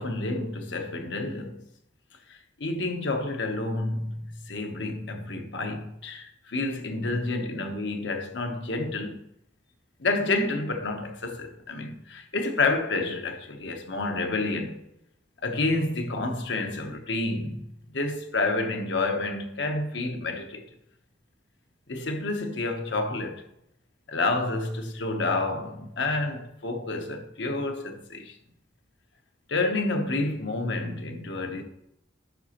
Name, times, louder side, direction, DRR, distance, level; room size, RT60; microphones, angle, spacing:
voice 1, 0.0-1.6 2.3-9.2 10.0-14.8 15.4-20.6 21.9-23.4 24.1-28.4 29.5-31.6, left 2 dB, 75° left, 0.9 m, -29 dB
11.0 x 5.0 x 2.9 m
head